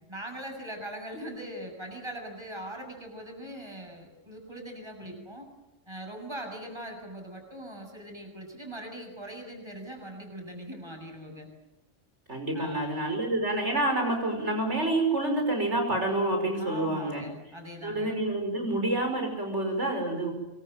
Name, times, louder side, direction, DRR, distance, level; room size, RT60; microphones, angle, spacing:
voice 1, 0.1-5.5 5.9-11.5 12.5-13.0 16.6-18.1, right 1 dB, 20° right, 3 dB, 7.2 m, -41 dB
voice 2, 12.3-17.2 17.8-20.3, right 1 dB, 65° right, 3 dB, 6.0 m, -28 dB
26.0 x 23.0 x 9.4 m, 0.97 s
omnidirectional pair, 1.3 m